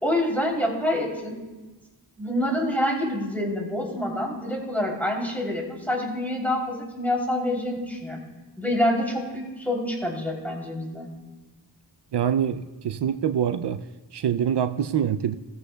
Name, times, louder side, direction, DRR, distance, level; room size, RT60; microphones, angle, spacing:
voice 1, 0.0-1.4 2.2-8.2 8.6-11.1, left 1 dB, 5° left, -2 dB, 3.2 m, -27 dB
voice 2, 12.1-13.8 14.1-15.3, right 9 dB, 80° right, 10 dB, 0.5 m, -25 dB
17.0 x 14.5 x 2.3 m, 1.2 s
wide cardioid pair, 45°, 40 cm